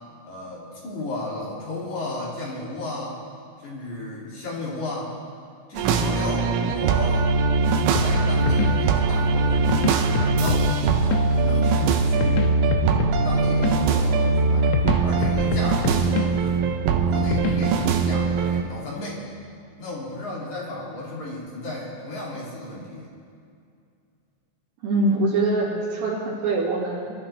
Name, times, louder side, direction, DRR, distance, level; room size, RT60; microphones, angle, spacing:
voice 1, 0.2-3.2 3.6-5.2 5.7-7.3 8.0-10.7 11.3-12.6 13.2-14.7 15.0-16.6 17.0-19.2 19.8-23.1, left 2 dB, 45° left, -5 dB, 3.7 m, -33 dB
sound 1, 5.8-18.6, right 4 dB, 80° right, 3.2 m, -21 dB
sound 2, 8.0-18.1, left 7 dB, 80° left, 3.1 m, -29 dB
voice 2, 24.8-27.1, right 2 dB, 65° right, -9 dB, 4.1 m, -23 dB
24.5 x 13.5 x 3.4 m, 2.4 s
omnidirectional pair, 5.5 m